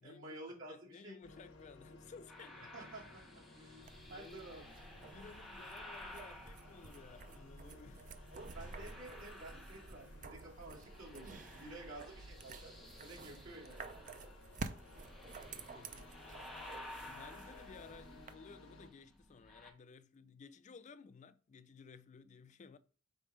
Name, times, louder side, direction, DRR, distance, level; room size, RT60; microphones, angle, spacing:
voice 1, 0.0-1.2 2.7-4.6 8.3-13.9, right 2 dB, 85° right, 2.5 m, -52 dB
voice 2, 0.7-2.8 3.6-3.7 4.1-4.5 5.0-8.1 15.5-16.5 16.8-22.8, left 5 dB, 35° left, 0.4 m, -57 dB
sound 1, 1.2-18.9, left 2 dB, 75° left, 1.2 m, -59 dB
Ghost Whispers, 2.3-7.6 8.1-10.4 10.6-19.7, left 1 dB, ahead, 0.9 m, -55 dB
sound 2, 3.8-18.3, right 3 dB, 40° right, 0.5 m, -51 dB
5.4 x 4.2 x 4.8 m
head